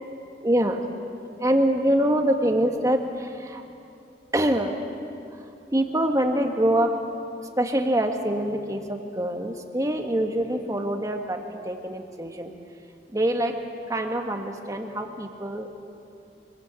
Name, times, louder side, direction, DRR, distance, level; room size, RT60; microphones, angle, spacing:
voice 1, 0.4-0.9 1.4-3.6 4.3-4.8 5.3-6.9 7.6-11.4 11.6-12.5 13.1-13.6 13.9-15.7, right 1 dB, 20° right, 4 dB, 1.7 m, -25 dB
25.5 x 20.5 x 8.4 m, 2.6 s
head